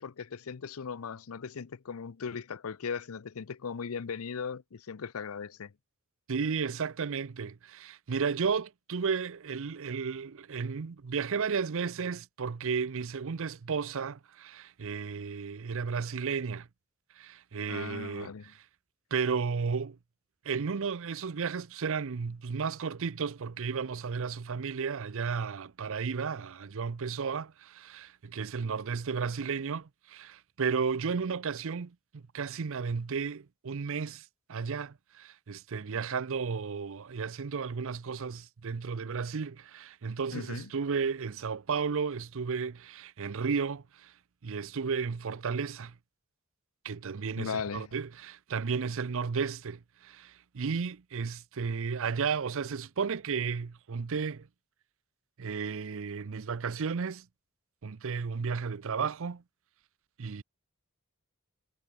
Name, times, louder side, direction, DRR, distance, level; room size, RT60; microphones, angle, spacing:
voice 1, 0.0-5.7 17.7-18.5 40.3-40.7 47.4-47.9, left 6 dB, 80° left, 0.6 m, -38 dB
voice 2, 6.3-16.7 17.2-18.6 19.1-20.0 20.4-44.1 44.4-45.9 46.8-54.5 55.4-57.3 57.8-59.4 60.2-60.4, right 5 dB, 70° right, 0.6 m, -33 dB
head